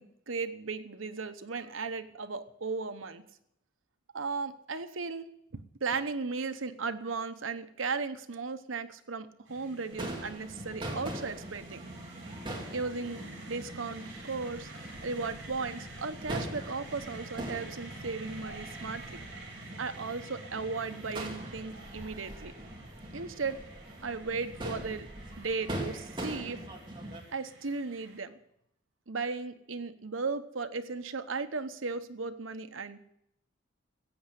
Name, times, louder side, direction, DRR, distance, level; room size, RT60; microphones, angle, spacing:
voice 1, 0.0-3.2 4.1-5.3 5.8-11.8 12.7-13.2 13.5-14.7 15.0-19.2 19.8-22.5 23.1-23.6 24.0-25.1 25.4-26.6 27.3-28.4 29.1-33.1, right 4 dB, 90° right, 9 dB, 1.0 m, -36 dB
sound 1, 9.5-28.2, right 2 dB, 70° right, 6.8 m, -49 dB
Crowd / Fireworks, 9.9-27.2, right 1 dB, 25° right, 2.4 m, -42 dB
14.5 x 8.7 x 8.2 m, 0.78 s
head